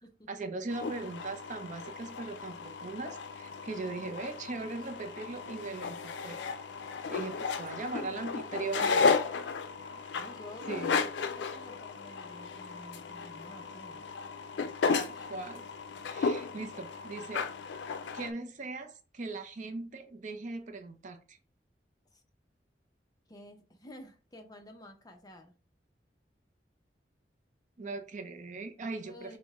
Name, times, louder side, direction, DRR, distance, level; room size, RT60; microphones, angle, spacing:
voice 1, 0.3-6.4 7.1-9.1 10.7-10.9 14.9-15.6 16.1-17.5 18.1-21.4 27.8-29.4, right 3 dB, 45° right, 0.5 m, -39 dB
sound 1, 0.7-18.3, left 5 dB, 85° left, 0.4 m, -34 dB
voice 2, 8.0-8.7 10.1-14.1 16.6-16.7 22.1-22.2 23.3-25.5 29.0-29.4, equal, 20° left, 0.6 m, -50 dB
5.3 x 2.1 x 3.5 m
head